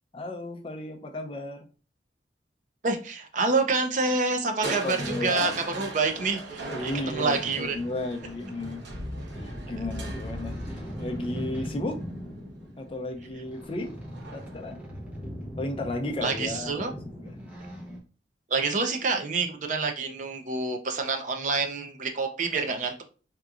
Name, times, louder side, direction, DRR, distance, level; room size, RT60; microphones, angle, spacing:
voice 1, 0.1-1.6 4.6-5.6 6.6-9.0 9.4-12.0 12.8-13.9 14.3-14.8 15.6-17.3, left 2 dB, 30° left, 3 dB, 0.5 m, -34 dB
voice 2, 2.8-7.8 16.2-16.9 18.5-23.0, right 3 dB, 45° right, 5 dB, 0.5 m, -27 dB
Crushing, 4.6-12.6 14.1-14.6 15.1-15.2, right 2 dB, 85° right, 0.9 m, -39 dB
sound 1, 6.9-18.0, equal, 10° right, 0.7 m, -40 dB
3.5 x 2.8 x 2.4 m, 0.37 s
head